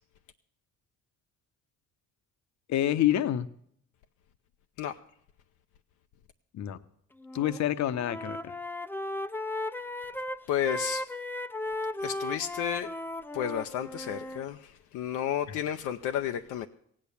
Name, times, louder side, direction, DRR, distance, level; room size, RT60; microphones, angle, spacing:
voice 1, 2.7-3.5 6.5-6.8 7.3-8.5, left 12 dB, 65° left, 0.8 m, -27 dB
Wind instrument woodwind instrument, 7.2-7.6 7.9-14.4, left 1 dB, 5° left, 0.5 m, -36 dB
voice 2, 10.5-11.0 12.0-12.9 13.3-16.7, left 10 dB, 85° left, 0.6 m, -32 dB
16.0 x 8.7 x 7.0 m
cardioid pair, 90°, 30 cm